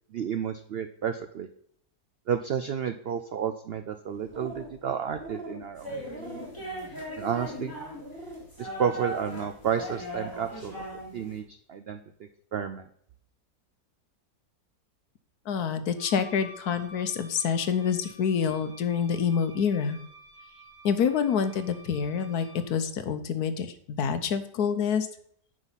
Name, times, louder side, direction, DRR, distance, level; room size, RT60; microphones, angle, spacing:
voice 1, 0.1-1.5 2.3-6.2 7.2-7.7 8.6-10.8 11.1-12.0 12.5-12.8, right 8 dB, 85° right, 8 dB, 0.5 m, -31 dB
sound 1, 4.1-4.8 5.1-5.6 6.0-6.6 7.1-7.6 8.0-8.4 8.9-9.3, right 1 dB, 40° right, 1.3 m, -42 dB
sound 2, 5.8-11.4, right 1 dB, 10° left, 3.2 m, -38 dB
voice 2, 15.5-20.0 20.8-25.1, left 7 dB, 70° left, 9 dB, 1.4 m, -27 dB
Wind instrument woodwind instrument, 16.0-22.7, right 1 dB, 30° left, 3.5 m, -50 dB
9.5 x 5.3 x 5.7 m, 0.67 s
omnidirectional pair, 1.7 m